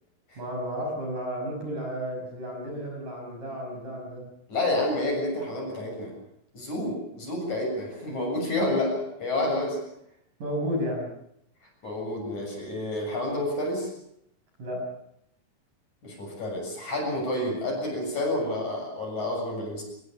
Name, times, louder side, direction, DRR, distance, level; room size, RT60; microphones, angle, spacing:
voice 1, 0.4-4.3 8.7-8.8 10.4-11.1 14.6-14.9, equal, 45° right, 2 dB, 6.9 m, -32 dB
voice 2, 4.5-6.1 6.5-9.8 11.8-13.9 16.0-19.8, left 1 dB, 40° left, 1 dB, 8.5 m, -29 dB
25.0 x 21.5 x 7.0 m, 0.75 s
omnidirectional pair, 5.4 m